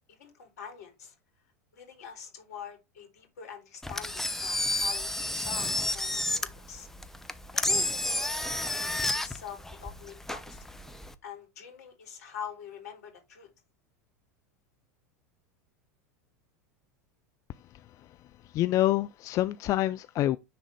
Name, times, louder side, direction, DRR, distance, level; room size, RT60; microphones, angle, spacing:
voice 1, 0.1-1.1 1.7-6.9 7.5-8.3 8.7-10.6 11.2-13.5, left 7 dB, 70° left, 3.3 m, -44 dB
Engine, 3.8-11.1, left 1 dB, 5° left, 0.8 m, -31 dB
voice 2, 18.4-20.4, left 14 dB, 40° left, 0.4 m, -27 dB
10.0 x 3.8 x 3.4 m
hypercardioid pair, 85°, 9 cm